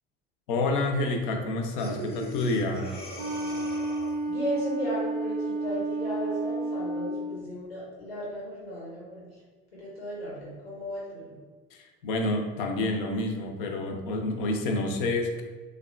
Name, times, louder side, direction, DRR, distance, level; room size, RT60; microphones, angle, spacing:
voice 1, 0.5-2.9 11.7-15.4, left 2 dB, 60° left, 3 dB, 0.5 m, -28 dB
Breathing, 1.8-4.3, equal, 20° left, 0.7 m, -39 dB
Wind instrument woodwind instrument, 3.2-7.4, right 2 dB, 50° right, 0.5 m, -31 dB
voice 2, 4.3-9.2 9.7-11.2, equal, 85° left, -6 dB, 0.9 m, -35 dB
3.4 x 2.2 x 2.3 m, 1.3 s
figure-of-eight pair, 70°, 30 cm